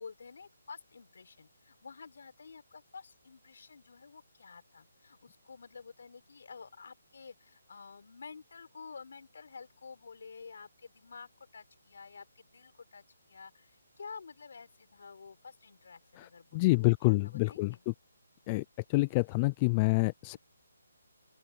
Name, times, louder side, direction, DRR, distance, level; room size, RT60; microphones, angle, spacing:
voice 1, 0.0-17.9, left 5 dB, 60° left, 4.9 m, -50 dB
voice 2, 16.5-17.7 18.5-18.6 18.9-20.4, left 24 dB, 15° left, 0.3 m, -27 dB
open air
hypercardioid pair, 170°, 0 cm